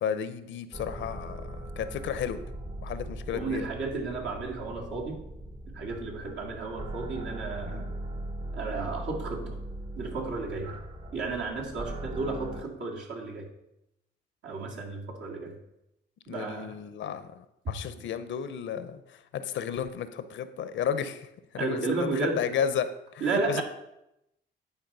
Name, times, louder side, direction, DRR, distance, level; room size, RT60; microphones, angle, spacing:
voice 1, 0.0-2.4 2.8-3.7 7.7-7.8 16.3-21.3 21.5-22.1 22.4-22.9 23.1-23.6, left 8 dB, 70° left, 12 dB, 0.7 m, -33 dB
sound 1, 0.7-12.6, right 1 dB, 25° right, 0.9 m, -39 dB
voice 2, 3.3-5.2 5.7-7.9 8.5-9.6 10.0-10.8 11.1-13.5 14.4-15.6 16.3-16.8 21.5-22.5 23.2-23.6, right 3 dB, 65° right, -1 dB, 2.1 m, -33 dB
10.5 x 4.3 x 5.4 m, 0.86 s
cardioid pair, 90°, 20 cm